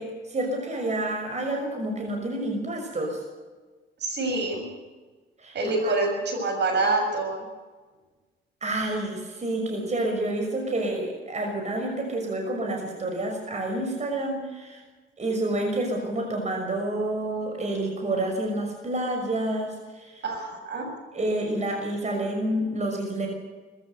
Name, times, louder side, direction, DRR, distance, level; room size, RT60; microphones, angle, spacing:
voice 1, 0.0-3.2 5.4-5.9 8.6-14.8 15.2-20.2 21.1-23.3, right 1 dB, 35° right, 2 dB, 6.0 m, -29 dB
voice 2, 4.0-4.6 5.5-7.4 20.2-20.9, right 2 dB, 60° right, 4 dB, 7.2 m, -26 dB
21.0 x 15.5 x 8.1 m, 1.3 s
cardioid pair, 90°, 20 cm